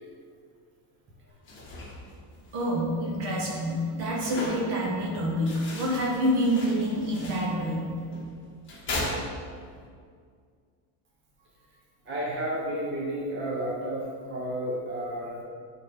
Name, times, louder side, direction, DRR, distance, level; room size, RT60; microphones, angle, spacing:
sound 1, 1.3-9.9, left 1 dB, 25° left, 1.6 m, -39 dB
voice 1, 2.5-8.0, equal, 55° right, -2 dB, 1.7 m, -27 dB
voice 2, 12.0-15.4, right 1 dB, 25° right, -5 dB, 1.2 m, -32 dB
8.7 x 4.2 x 3.8 m, 2.1 s
cardioid pair, 155°, 46 cm